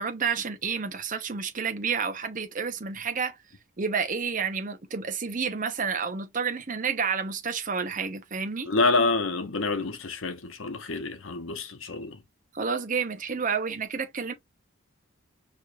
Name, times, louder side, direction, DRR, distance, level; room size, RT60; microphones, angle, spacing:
voice 1, 0.0-3.3 3.8-8.7 12.5-14.3, right 5 dB, 40° right, 0.8 m, -30 dB
voice 2, 8.7-12.2, left 3 dB, 80° left, 0.9 m, -27 dB
4.6 x 3.1 x 2.3 m
head